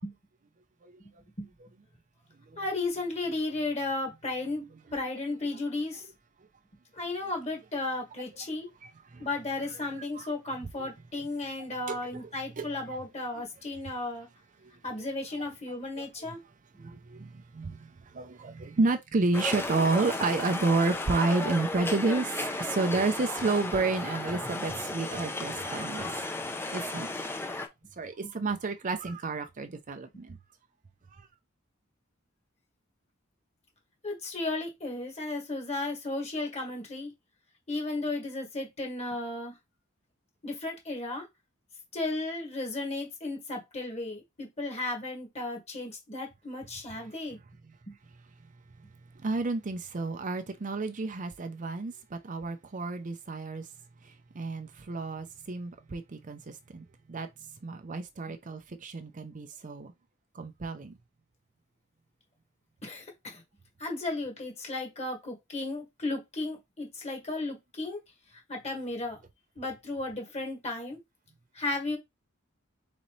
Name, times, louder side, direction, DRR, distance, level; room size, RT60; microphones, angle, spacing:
voice 1, 2.6-4.6 4.9-6.0 6.9-8.7 9.2-14.3 14.8-16.4 34.0-37.1 37.7-39.5 40.4-41.3 41.9-47.4 47.9-48.0 58.3-58.4 62.8-63.4 63.8-68.0 68.5-69.2 69.6-71.0 71.5-72.0, left 2 dB, 35° left, 1.8 m, -34 dB
voice 2, 8.8-9.3 10.2-10.3 10.8-10.9 11.9-12.0 12.6-13.0 14.6-14.7 15.4-15.5 16.0-16.1 16.8-26.3 26.7-27.1 28.0-30.4 31.1-31.2 49.2-53.7 54.3-57.3 57.6-59.9 60.3-60.9, right 3 dB, 40° right, 0.5 m, -31 dB
sound 1, 19.3-27.7, left 2 dB, 10° left, 0.5 m, -34 dB
4.2 x 3.9 x 3.1 m
head